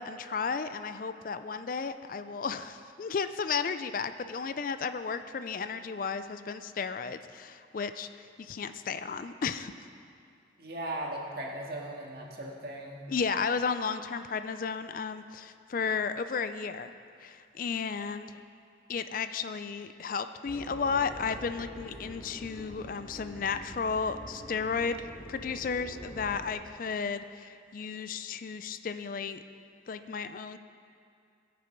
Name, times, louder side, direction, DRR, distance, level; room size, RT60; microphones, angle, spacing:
voice 1, 0.0-9.7 13.1-16.9 17.2-18.4 18.9-29.4 29.9-30.6, left 5 dB, 45° left, 11 dB, 0.4 m, -33 dB
voice 2, 10.6-13.0, right 1 dB, 55° right, -2 dB, 1.8 m, -38 dB
sound 1, 20.4-26.5, equal, 10° left, 1.2 m, -46 dB
20.0 x 6.8 x 5.2 m, 2.4 s
head